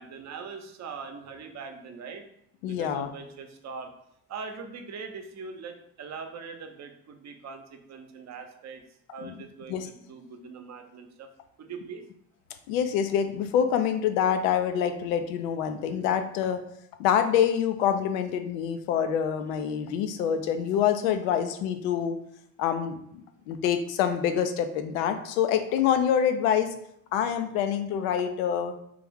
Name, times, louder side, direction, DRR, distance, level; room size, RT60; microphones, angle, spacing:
voice 1, 0.0-2.2 2.6-3.9 4.3-8.8 9.1-11.3 11.6-12.0, right 5 dB, 40° right, 6 dB, 0.8 m, -41 dB
voice 2, 2.6-3.1 9.2-9.3 9.7-9.9 12.7-16.6 17.0-22.2 22.6-23.2 23.5-26.7 27.1-28.7, left 8 dB, 75° left, 8 dB, 0.6 m, -26 dB
3.4 x 3.3 x 3.6 m, 0.72 s
hypercardioid pair, 55°, 41 cm